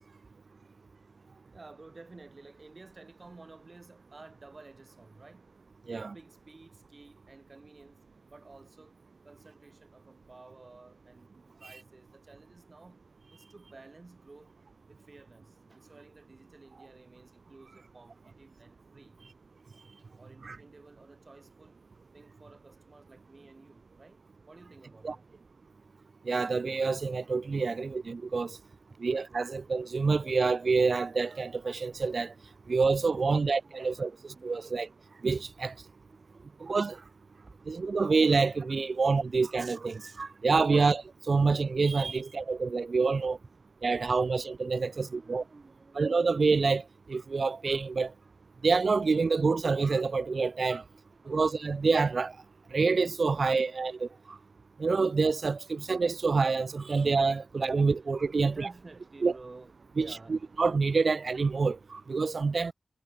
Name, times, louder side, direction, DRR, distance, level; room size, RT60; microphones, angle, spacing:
voice 1, 1.5-5.5 5.9-8.0 8.3-8.9 9.2-13.0 13.3-14.5 14.9-19.2 20.2-21.8 22.1-24.2 24.5-25.2 27.8-27.9 28.9-29.0 32.9-35.0 36.1-36.5 37.4-37.5 39.0-39.1 42.1-42.2 44.1-44.4 44.9-46.1 48.2-48.3 48.6-48.7 50.9-51.4 53.3-53.7 58.4-60.5, right 3 dB, 40° right, 7.5 m, -54 dB
voice 2, 26.3-28.6 29.0-32.3 32.7-34.9 35.2-35.7 36.6-37.0 37.7-43.4 43.8-45.4 46.0-48.1 48.6-50.8 51.3-52.4 52.7-54.4 54.8-58.7 59.2-59.3 60.0-62.7, right 4 dB, 60° right, 0.3 m, -27 dB
wide cardioid pair, 90°, 0 cm